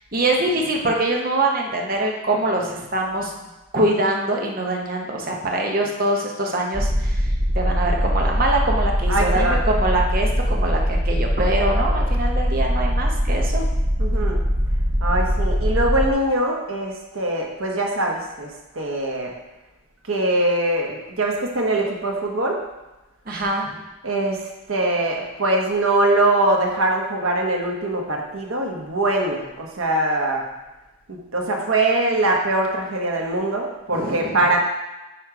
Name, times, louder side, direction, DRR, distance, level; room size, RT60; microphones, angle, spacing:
voice 1, 0.1-3.3 3.7-7.3 7.5-13.6 23.3-23.8 33.9-34.3, right 2 dB, 45° right, 0 dB, 0.9 m, -23 dB
sound 1, 6.7-16.1, equal, 20° right, 0.6 m, -21 dB
voice 2, 9.1-9.6 14.0-14.4 15.0-19.3 20.1-22.6 24.0-30.4 31.1-34.6, right 2 dB, 80° right, 0 dB, 1.1 m, -22 dB
8.6 x 3.1 x 4.8 m, 1.0 s
head